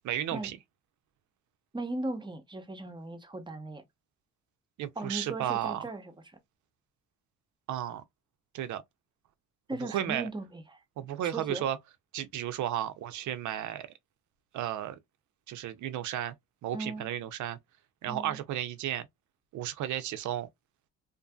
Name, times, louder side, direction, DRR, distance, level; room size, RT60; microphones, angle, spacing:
voice 1, 0.0-0.6 4.8-5.8 7.7-8.0 8.5-8.8 9.8-10.3 11.0-11.8 12.1-13.9 14.5-15.0 15.5-16.3 16.6-17.6 18.0-19.1 19.5-20.5, right 11 dB, 75° right, 0.6 m, -33 dB
voice 2, 1.7-3.8 5.0-6.1 9.7-10.8 11.3-11.6 16.7-17.1 18.1-18.4, right 2 dB, 15° right, 0.7 m, -37 dB
2.6 x 2.5 x 2.3 m
cardioid pair, 90°, 30 cm